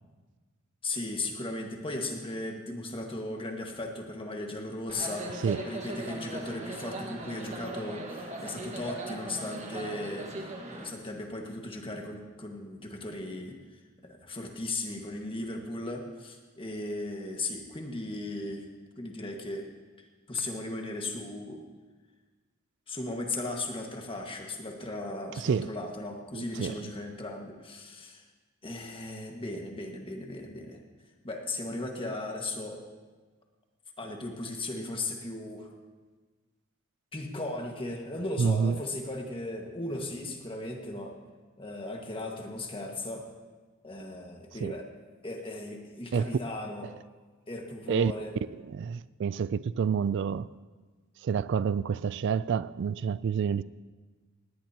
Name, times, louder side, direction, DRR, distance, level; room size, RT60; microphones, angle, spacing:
voice 1, 0.8-13.6 14.0-18.7 19.0-19.6 20.3-21.6 22.9-28.2 28.6-30.8 31.2-32.8 34.0-35.7 37.1-41.2 41.6-43.3 43.8-44.9 45.2-46.9 47.5-48.3, left 2 dB, 25° left, 1.7 m, -37 dB
sound 1, 4.9-10.9, right 1 dB, 35° right, 1.6 m, -39 dB
voice 2, 25.4-25.7 26.3-26.9 38.4-38.8 44.6-44.7 46.1-46.4 47.9-48.1 48.7-50.5 51.2-53.6, right 6 dB, 60° right, 0.3 m, -28 dB
18.5 x 17.5 x 2.9 m
head